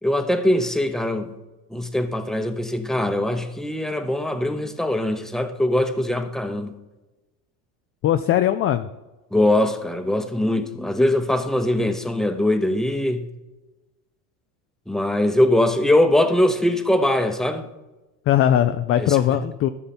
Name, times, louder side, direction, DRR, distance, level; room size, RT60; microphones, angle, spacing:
voice 1, 0.0-1.3 1.7-6.7 9.3-13.2 14.9-17.6 19.0-19.2, left 1 dB, ahead, 0.8 m, -21 dB
voice 2, 8.0-8.9 18.3-19.7, left 11 dB, 30° left, 0.4 m, -19 dB
13.5 x 5.5 x 4.3 m
hypercardioid pair, 90°, 45 cm